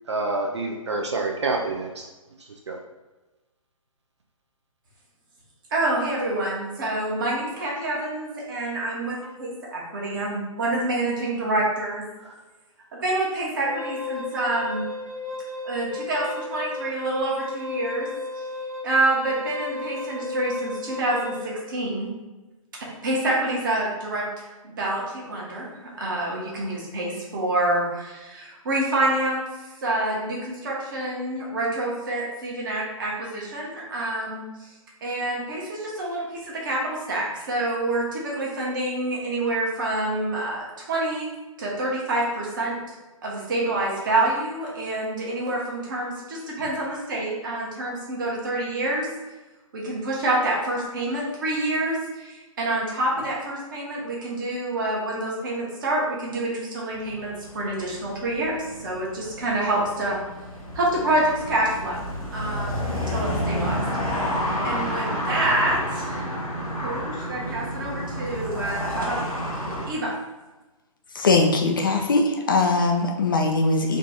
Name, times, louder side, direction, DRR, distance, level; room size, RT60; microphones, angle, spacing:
voice 1, 0.1-2.1 2.7-2.8, right 3 dB, 55° right, 1 dB, 0.5 m, -27 dB
voice 2, 5.7-12.1 12.9-14.8 15.6-18.1 18.8-22.1 22.8-29.4 29.8-34.7 35.0-41.3 41.6-42.9 43.2-49.1 49.7-58.5 58.8-60.2 60.7-62.0 62.3-63.8 64.0-66.2 66.8-69.2 69.9-70.1, right 1 dB, 35° right, -4 dB, 1.2 m, -27 dB
Wind instrument woodwind instrument, 13.6-21.5, left 2 dB, 75° right, 1.1 m, -34 dB
sound 1, 56.9-69.9, equal, 85° left, 1.3 m, -30 dB
voice 3, 71.2-74.0, left 3 dB, 40° left, 2 dB, 0.4 m, -21 dB
3.8 x 2.5 x 3.7 m, 1.1 s
figure-of-eight pair, 135°, 18 cm